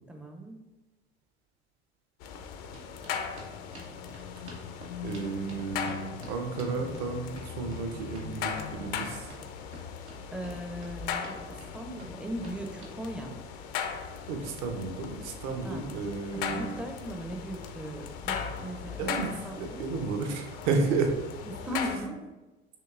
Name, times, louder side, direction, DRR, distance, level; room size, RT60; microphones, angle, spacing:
voice 1, 0.1-0.6 10.3-13.4 15.6-15.9 16.3-19.2 19.4-19.8 21.4-22.3, right 1 dB, 5° right, 4 dB, 0.5 m, -38 dB
sound 1, 2.2-22.0, left 7 dB, 50° left, 0.5 m, -38 dB
sound 2, 2.7-13.0, right 1 dB, 85° right, 1.0 m, -49 dB
voice 2, 5.0-9.3 14.3-16.8 19.0-21.1 22.0-22.1, right 4 dB, 55° right, 4 dB, 0.8 m, -32 dB
5.8 x 2.9 x 2.4 m, 1.2 s
hypercardioid pair, 75°, 32 cm